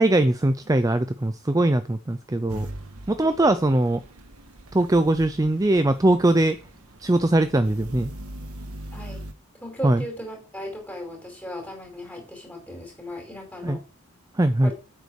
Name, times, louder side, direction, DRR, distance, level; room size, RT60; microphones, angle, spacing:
voice 1, 0.0-2.7 3.1-4.0 4.7-6.6 7.0-8.1 9.8-10.0 13.6-13.8 14.3-14.7, right 1 dB, 15° right, 11 dB, 0.5 m, -21 dB
sound 1, 2.5-9.3, right 1 dB, 90° right, 1.5 m, -41 dB
voice 2, 3.2-3.6 8.9-9.3 9.6-13.8 14.6-14.7, equal, 5° left, 1 dB, 4.9 m, -37 dB
8.6 x 8.1 x 6.4 m, 0.35 s
head